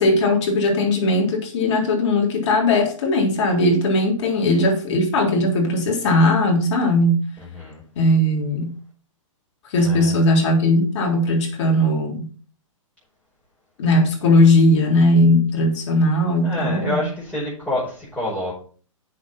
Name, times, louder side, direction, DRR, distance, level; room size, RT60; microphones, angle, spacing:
voice 1, 0.0-7.2 8.0-8.7 9.7-12.3 13.8-17.0, left 1 dB, 60° left, 4.0 m, -18 dB
voice 2, 9.8-10.1 16.4-18.5, left 1 dB, 5° left, 5.7 m, -27 dB
8.3 x 6.9 x 5.8 m
hypercardioid pair, 125°, 17 cm